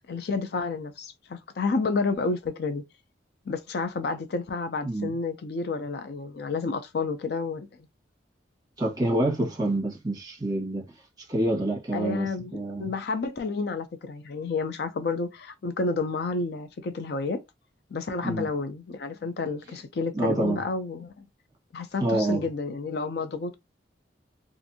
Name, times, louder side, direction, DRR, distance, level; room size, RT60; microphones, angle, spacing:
voice 1, 0.1-2.8 3.5-7.7 11.9-17.4 17.9-21.2 21.7-23.5, left 4 dB, 60° left, 0.4 m, -30 dB
voice 2, 8.8-10.8 11.2-12.9 18.2-18.5 20.1-20.6 22.0-22.4, right 1 dB, 20° right, 1.1 m, -27 dB
2.5 x 2.5 x 2.6 m
head